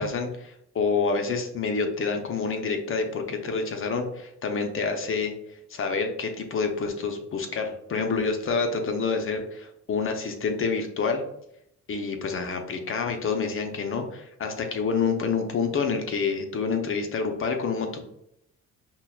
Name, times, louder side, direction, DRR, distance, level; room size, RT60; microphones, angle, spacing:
voice 1, 0.0-5.3 5.7-11.2 11.9-18.0, left 4 dB, 45° left, 4 dB, 0.6 m, -28 dB
5.4 x 2.2 x 2.3 m, 0.76 s
cardioid pair, 90°, 30 cm